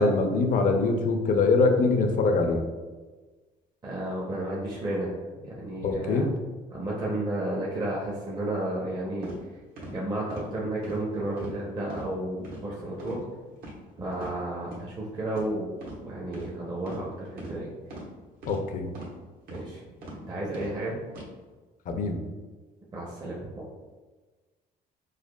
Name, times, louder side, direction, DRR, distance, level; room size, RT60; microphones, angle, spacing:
voice 1, 0.0-2.6 5.8-6.3 18.5-18.9 21.9-22.2, left 3 dB, 50° left, 4 dB, 0.5 m, -23 dB
voice 2, 3.8-5.2 5.4-6.2 6.7-9.3 9.9-13.2 14.0-15.7 16.0-17.7 19.5-19.8 20.1-21.0 22.9-23.5, right 1 dB, 25° right, -5 dB, 0.7 m, -32 dB
sound 1, 9.2-9.4 9.8-9.9 10.3-10.5 10.8-11.0 11.4-11.6 11.9-12.1 12.4-12.6 13.0-13.2 13.6-13.7 14.1-14.3 14.7-14.8 15.3-15.5 15.8-16.0 16.3-16.5 16.9-17.0 17.4-17.5 17.9-18.1 18.4-18.6 18.9-19.1 19.5-19.7 20.0-20.2 20.5-20.7 21.1-21.3, right 1 dB, 60° right, 1.2 m, -41 dB
4.9 x 2.2 x 2.2 m, 1.3 s
cardioid pair, 110°, 17 cm